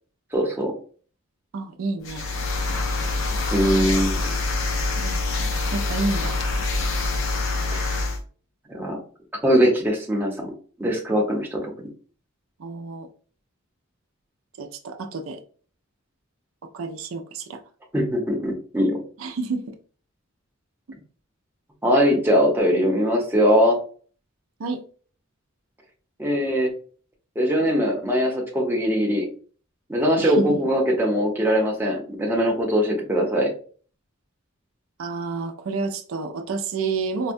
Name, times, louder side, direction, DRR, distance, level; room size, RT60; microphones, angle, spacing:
voice 1, 0.3-0.7 3.5-4.4 7.7-7.9 8.7-9.0 9.4-10.5 10.8-11.9 17.9-19.0 21.8-23.8 26.2-26.7 27.4-29.3 29.9-33.5, equal, 10° right, 0.8 m, -21 dB
voice 2, 1.5-2.3 5.0-5.3 5.7-6.4 12.6-13.1 14.6-15.4 16.7-17.6 19.2-19.8 24.6-24.8 30.2-30.6 35.0-37.3, right 3 dB, 80° right, 0.5 m, -29 dB
sound 1, 2.0-8.2, left 3 dB, 70° left, 0.7 m, -25 dB
4.5 x 2.1 x 2.6 m
head